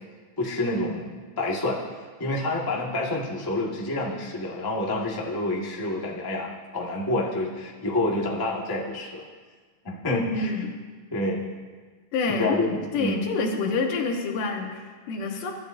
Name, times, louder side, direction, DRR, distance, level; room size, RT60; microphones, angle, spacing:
voice 1, 0.4-1.8 2.2-9.2 9.8-10.5 11.1-11.4 12.3-13.2, left 1 dB, 15° left, -4 dB, 0.8 m, -28 dB
voice 2, 10.1-10.8 12.1-15.5, left 4 dB, 85° left, 2 dB, 3.0 m, -28 dB
23.0 x 12.0 x 2.7 m, 1.5 s
omnidirectional pair, 3.7 m